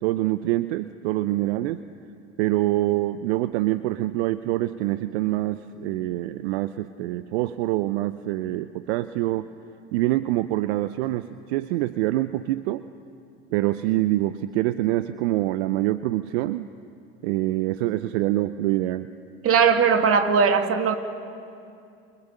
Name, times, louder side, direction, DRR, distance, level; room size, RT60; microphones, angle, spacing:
voice 1, 0.0-1.8 2.4-9.5 9.9-12.8 13.5-16.7 17.2-19.1, right 16 dB, 70° right, 13 dB, 0.8 m, -25 dB
voice 2, 19.4-20.9, right 6 dB, 40° right, 7 dB, 2.5 m, -19 dB
29.0 x 29.0 x 6.8 m, 2.5 s
hypercardioid pair, 80°, 34 cm